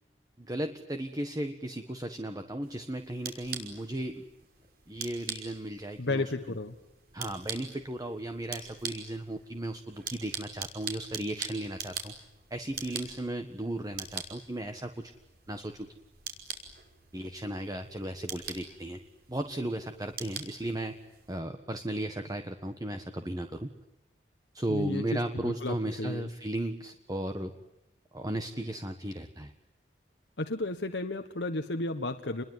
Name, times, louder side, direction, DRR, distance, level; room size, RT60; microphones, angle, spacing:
voice 1, 0.4-4.2 4.9-6.3 7.1-12.1 12.5-15.1 15.5-15.9 17.1-19.0 19.3-21.0 21.3-23.7 24.5-27.5 28.1-29.5, right 1 dB, 20° right, 6 dB, 1.5 m, -35 dB
sound 1, 2.6-21.4, right 6 dB, 60° right, 5.6 m, -44 dB
voice 2, 6.0-6.8 24.7-26.3 30.4-32.4, left 2 dB, 80° left, 6 dB, 1.4 m, -33 dB
29.0 x 22.0 x 9.4 m, 0.93 s
head